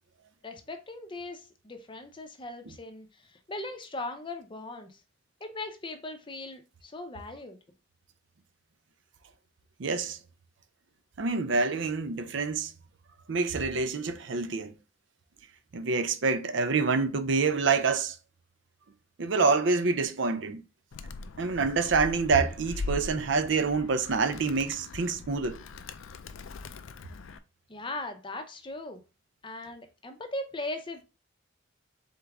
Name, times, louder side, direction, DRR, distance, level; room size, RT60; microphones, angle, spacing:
voice 1, 0.4-5.0 5.4-7.6 27.7-29.0 29.4-31.0, left 2 dB, 25° left, 0.6 m, -39 dB
voice 2, 9.8-10.2 11.2-12.7 13.3-14.7 15.7-18.2 19.2-20.6 21.4-25.6, right 4 dB, 65° right, 0.5 m, -27 dB
Animal, 20.9-27.4, left 3 dB, 85° left, 0.4 m, -41 dB
3.9 x 3.5 x 3.4 m
head